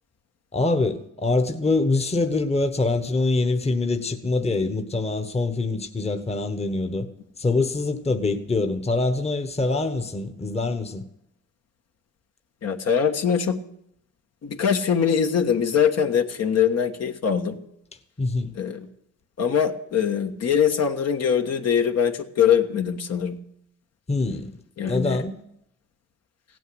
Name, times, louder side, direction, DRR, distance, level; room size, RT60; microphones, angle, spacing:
voice 1, 0.5-7.1 7.4-11.0 18.2-18.5 24.1-24.5 24.8-25.4, left 3 dB, 20° left, 1.3 m, -24 dB
voice 2, 12.6-13.6 14.4-17.6 18.5-18.9 19.4-23.4 24.8-25.2, left 7 dB, 55° left, 1.5 m, -22 dB
16.0 x 9.2 x 7.9 m
cardioid pair, 90°, 30 cm